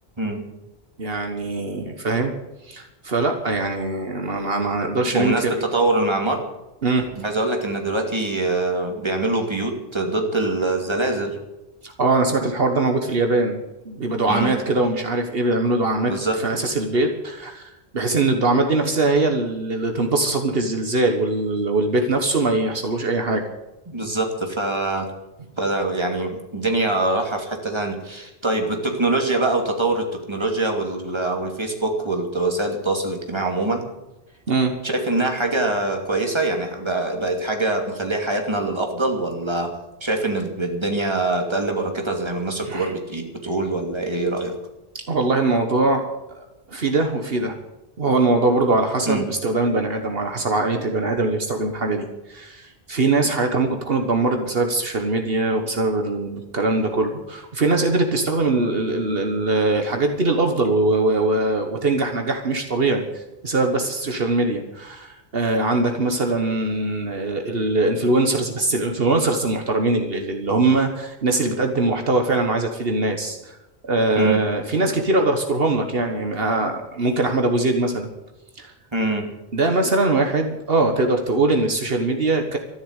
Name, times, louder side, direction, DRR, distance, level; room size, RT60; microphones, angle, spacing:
voice 1, 1.0-2.3 2.6-5.5 6.8-7.1 11.8-23.4 34.5-34.8 42.7-42.9 45.1-46.1 46.3-47.6 48.0-73.6 73.8-78.1 78.6-78.7 79.5-82.6, right 2 dB, 70° right, 4 dB, 1.7 m, -22 dB
voice 2, 5.1-6.4 7.1-11.4 14.3-14.5 16.1-16.4 23.9-25.1 25.6-33.8 34.8-39.7 40.0-44.5 49.1-49.3 74.2-74.4 78.9-79.3, right 2 dB, 25° right, 2 dB, 2.6 m, -24 dB
13.5 x 11.5 x 8.2 m, 0.98 s
omnidirectional pair, 1.0 m